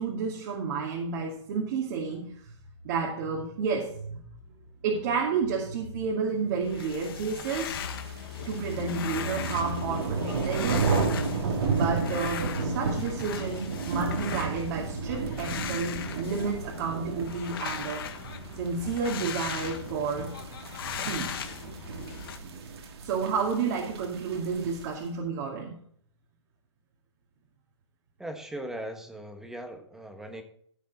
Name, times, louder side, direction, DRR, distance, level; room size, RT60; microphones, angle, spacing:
voice 1, 0.0-2.5 2.8-4.2 4.8-7.8 8.5-11.1 11.7-18.1 18.5-20.3 21.1-21.4 23.0-25.8, right 5 dB, 40° right, -1 dB, 2.4 m, -31 dB
sound 1, 6.6-22.4, left 8 dB, 50° left, 1.7 m, -39 dB
sound 2, 7.5-25.0, right 4 dB, 55° right, 2.6 m, -33 dB
voice 2, 28.2-30.4, right 1 dB, 5° right, 5 dB, 1.4 m, -39 dB
15.5 x 7.3 x 4.2 m, 0.62 s
hypercardioid pair, 145°, 16 cm